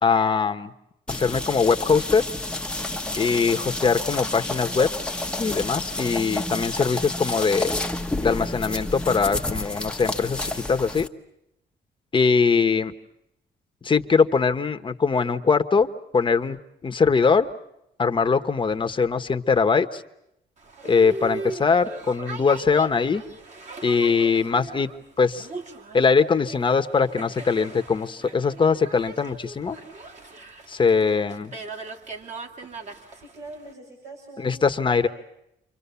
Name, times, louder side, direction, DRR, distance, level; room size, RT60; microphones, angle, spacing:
voice 1, 0.0-0.7 1.1-2.2 3.2-4.9 5.4-7.7 8.2-11.1 12.1-12.9 13.8-15.9 16.1-16.6 16.8-17.5 18.0-20.0 20.8-23.2 23.8-24.9 25.2-25.5 25.9-29.8 30.7-31.5 34.4-35.1, left 5 dB, 30° left, 8 dB, 1.2 m, -21 dB
sound 1, 1.1-11.1, left 2 dB, 5° left, 1.1 m, -30 dB
Boat Water vehicle, 20.6-33.7, right 3 dB, 45° right, 2.5 m, -39 dB
voice 2, 33.1-35.1, right 2 dB, 80° right, 0 dB, 7.5 m, -43 dB
30.0 x 25.0 x 7.0 m, 0.81 s
cardioid pair, 130°, 18 cm